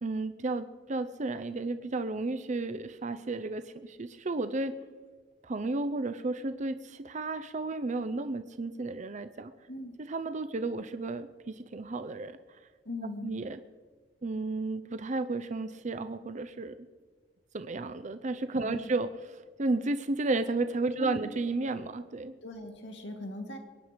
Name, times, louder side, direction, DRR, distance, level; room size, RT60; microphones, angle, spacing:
voice 1, 0.0-4.7 5.4-9.5 10.0-12.6 13.2-13.6 14.2-16.8 17.5-22.3, right 2 dB, 40° right, 11 dB, 0.6 m, -33 dB
voice 2, 12.8-13.3 18.6-18.8 21.0-21.2 22.4-23.6, left 1 dB, 70° left, 3 dB, 2.2 m, -39 dB
23.0 x 9.7 x 5.1 m, 1.4 s
head